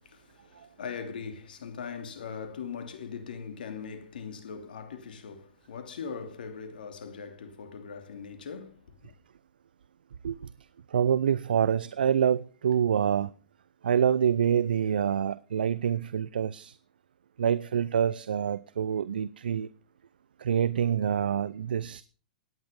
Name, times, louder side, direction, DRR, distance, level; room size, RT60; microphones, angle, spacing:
voice 1, 0.0-9.1, left 6 dB, 75° left, 2.9 m, -40 dB
voice 2, 10.9-13.3 13.8-16.8 17.4-19.7 20.4-22.0, right 8 dB, 80° right, 0.6 m, -26 dB
17.0 x 10.5 x 5.3 m
hypercardioid pair, 115°, 5 cm